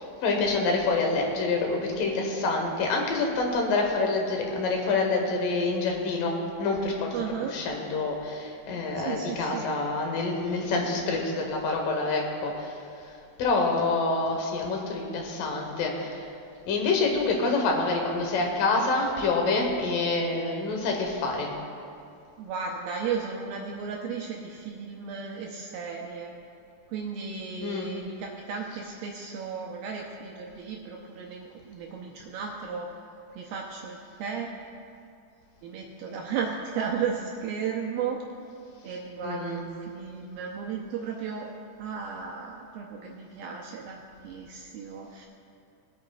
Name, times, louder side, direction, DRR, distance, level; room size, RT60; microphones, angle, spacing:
voice 1, 0.0-7.1 7.5-12.8 13.4-16.3 16.7-21.5 27.6-27.9 39.2-39.6, left 3 dB, 65° left, 1 dB, 2.5 m, -27 dB
voice 2, 7.1-7.6 9.0-9.8 22.4-26.4 26.9-32.9 33.4-34.5 35.6-38.2 38.8-41.5 41.8-45.3, right 6 dB, 80° right, -1 dB, 2.3 m, -34 dB
21.0 x 8.8 x 2.3 m, 2.5 s
omnidirectional pair, 4.8 m